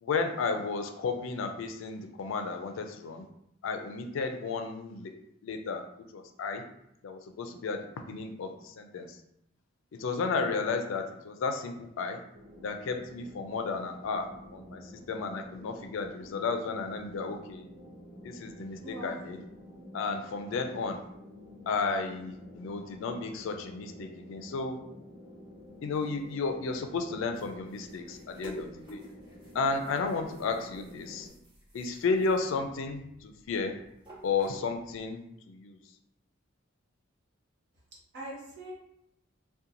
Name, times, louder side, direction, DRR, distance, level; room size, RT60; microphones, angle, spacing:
voice 1, 0.0-3.3 3.6-5.1 5.4-5.8 6.1-6.6 7.0-9.1 10.0-12.2 12.6-17.7 18.2-19.4 19.9-21.0 21.7-24.8 25.8-29.0 29.5-31.3 31.7-33.8 34.2-35.2 35.5-35.8, left 4 dB, 70° left, 5 dB, 0.3 m, -33 dB
sound 1, 12.3-31.3, left 1 dB, 85° right, 1.0 m, -50 dB
voice 2, 18.8-19.2 38.1-38.7, right 1 dB, 60° right, -4 dB, 0.9 m, -41 dB
sound 2, 25.5-35.1, equal, 25° right, 1.3 m, -52 dB
2.8 x 2.2 x 2.5 m, 0.77 s
head